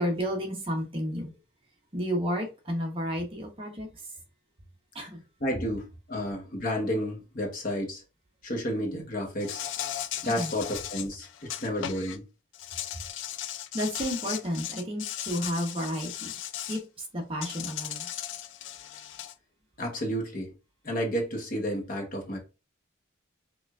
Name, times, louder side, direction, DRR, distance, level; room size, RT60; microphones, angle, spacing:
voice 1, 0.0-1.3 1.9-3.9 4.9-5.2 10.2-10.5 13.7-16.3 16.7-18.1, equal, 25° right, 0.9 m, -31 dB
voice 2, 5.4-8.0 8.4-9.7 10.2-12.2 19.8-20.5 20.8-22.4, equal, 40° left, 1.0 m, -31 dB
Insect, 9.4-12.2 12.5-16.8 17.4-19.3, left 11 dB, 65° left, 0.3 m, -37 dB
4.7 x 2.4 x 2.3 m
head